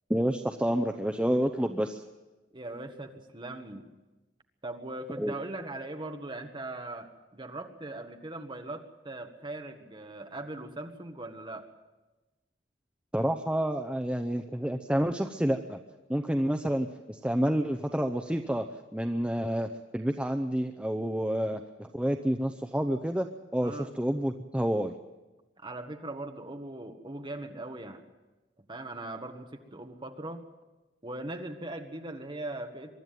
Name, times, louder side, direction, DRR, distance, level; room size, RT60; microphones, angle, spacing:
voice 1, 0.1-2.0 5.2-5.3 13.1-15.8 16.1-18.7 18.9-23.3 23.5-24.9, equal, 5° right, 6 dB, 0.7 m, -29 dB
voice 2, 2.5-3.9 4.6-11.7 23.6-23.9 25.6-28.0 28.7-30.5 31.0-32.9, right 2 dB, 25° right, 5 dB, 1.6 m, -40 dB
24.0 x 12.5 x 9.2 m, 1.1 s
head